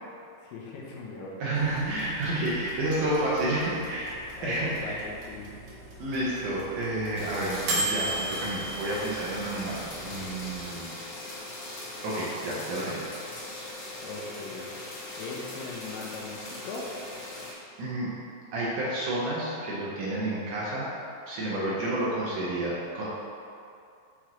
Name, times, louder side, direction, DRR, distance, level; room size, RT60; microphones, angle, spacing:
voice 1, 0.4-1.4 4.2-5.5 14.0-14.9 15.2-17.0, left 3 dB, 80° left, -3 dB, 2.3 m, -39 dB
voice 2, 1.4-5.0 6.0-10.9 12.0-13.0 17.8-18.1 18.5-20.9 21.3-23.0, right 1 dB, 70° right, -6 dB, 2.2 m, -30 dB
sound 1, 1.6-10.6, right 2 dB, 90° right, 2.9 m, -37 dB
sound 2, 7.2-17.5, left 1 dB, 60° left, 2.0 m, -40 dB
6.4 x 5.8 x 3.0 m, 2.5 s
omnidirectional pair, 4.2 m